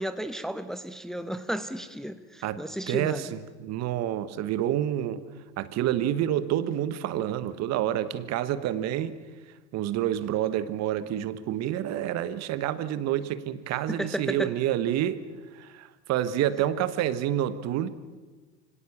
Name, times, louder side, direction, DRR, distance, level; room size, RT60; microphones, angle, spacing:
voice 1, 0.0-3.3 13.9-14.5, equal, ahead, 1.0 m, -33 dB
voice 2, 2.4-5.2 5.6-9.2 9.7-15.2 15.5-17.9, right 11 dB, 45° right, 1.2 m, -28 dB
24.5 x 17.0 x 7.2 m
hypercardioid pair, 80°, 36 cm